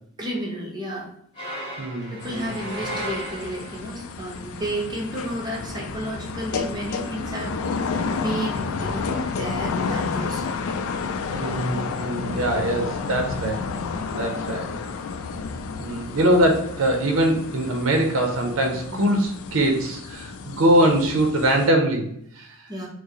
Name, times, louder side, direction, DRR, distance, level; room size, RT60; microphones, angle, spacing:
voice 1, 0.2-1.1 2.1-7.6 8.1-10.5 12.5-12.8 14.2-14.6 18.9-19.2 22.7-22.9, right 1 dB, 20° right, -2 dB, 0.8 m, -32 dB
sound 1, 1.3-4.0, equal, 25° left, 1.3 m, -34 dB
voice 2, 1.8-2.6 11.3-13.8 14.1-14.7 15.8-22.6, right 1 dB, 80° right, 3 dB, 0.6 m, -22 dB
sound 2, 2.2-21.7, left 4 dB, 85° left, 0.3 m, -31 dB
4.5 x 2.0 x 3.0 m, 0.69 s
head